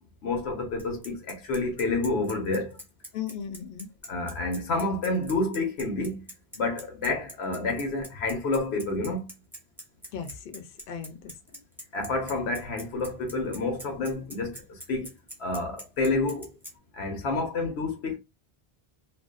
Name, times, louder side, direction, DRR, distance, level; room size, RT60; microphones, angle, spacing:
voice 1, 0.2-2.8 4.1-6.2 6.6-9.3 11.9-15.1 15.4-16.5 16.9-18.2, left 2 dB, 85° left, 1.0 m, -29 dB
Bicycle, 0.8-16.7, right 1 dB, ahead, 0.6 m, -43 dB
voice 2, 3.1-3.9 10.1-11.6, left 8 dB, 65° left, 0.7 m, -37 dB
2.5 x 2.2 x 2.3 m
omnidirectional pair, 1.1 m